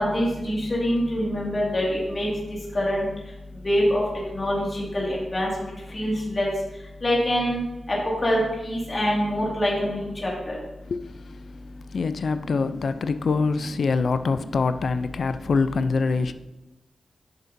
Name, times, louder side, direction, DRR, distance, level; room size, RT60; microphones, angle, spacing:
voice 1, 0.0-2.3 2.7-3.1 3.6-4.0 4.3-6.5 7.0-7.6 8.2-10.6, equal, 35° left, 2.1 m, -25 dB
voice 2, 10.9-11.6 11.9-16.3, left 4 dB, 65° left, 0.4 m, -25 dB
10.0 x 6.8 x 2.6 m
cardioid pair, 75°, 0 cm